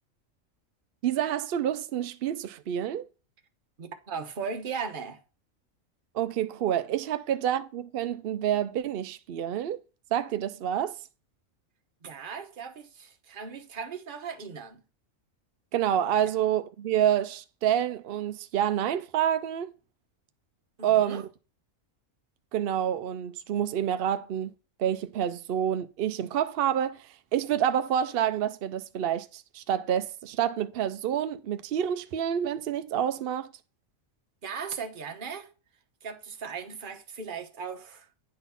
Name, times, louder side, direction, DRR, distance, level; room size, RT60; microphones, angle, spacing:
voice 1, 1.0-3.0 6.1-9.8 10.1-10.9 15.7-19.7 20.8-21.2 22.5-24.5 24.8-33.5, right 10 dB, 65° right, 0.6 m, -28 dB
voice 2, 3.8-5.2 12.0-14.8 20.8-21.2 34.4-35.5 36.0-38.1, right 5 dB, 40° right, 1.1 m, -37 dB
9.8 x 4.1 x 5.6 m
omnidirectional pair, 1.4 m